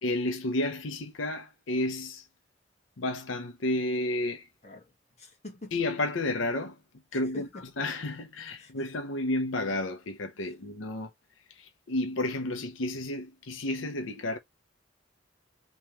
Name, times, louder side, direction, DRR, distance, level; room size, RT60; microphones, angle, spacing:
voice 1, 0.0-2.3 3.0-4.5 5.7-6.8 7.1-7.5 7.8-11.1 11.5-14.4, left 1 dB, 90° left, 0.7 m, -31 dB
voice 2, 4.6-5.8 7.1-7.7 8.6-8.9 10.4-10.6, left 4 dB, 35° left, 1.5 m, -46 dB
3.4 x 3.1 x 3.0 m
head